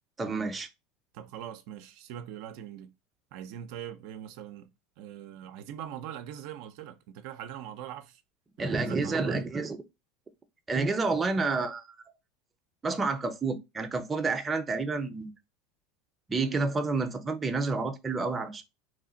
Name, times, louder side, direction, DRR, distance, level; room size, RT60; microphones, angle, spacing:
voice 1, 0.2-0.7 8.6-9.8 10.7-11.8 12.8-15.3 16.3-18.6, right 3 dB, 20° right, 0.6 m, -29 dB
voice 2, 1.1-2.9 3.3-4.7 5.0-8.2 8.6-9.5, right 10 dB, 70° right, 0.4 m, -42 dB
3.1 x 2.4 x 3.8 m
supercardioid pair, 110°, 0 cm